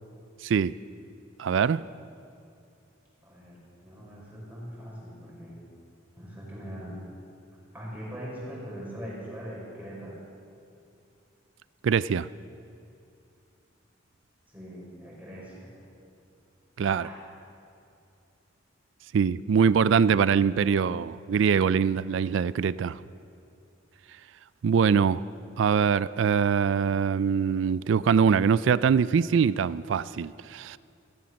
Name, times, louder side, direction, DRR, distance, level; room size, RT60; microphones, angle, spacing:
voice 1, 0.4-0.7 1.4-1.8 11.8-12.3 16.8-17.1 19.1-23.0 24.6-25.2 25.6-30.8, right 6 dB, 70° right, 0.3 m, -23 dB
voice 2, 3.2-5.6 6.1-7.0 7.7-10.2 14.5-15.7 16.9-17.2, equal, 10° right, 5.2 m, -41 dB
16.0 x 13.5 x 6.3 m
head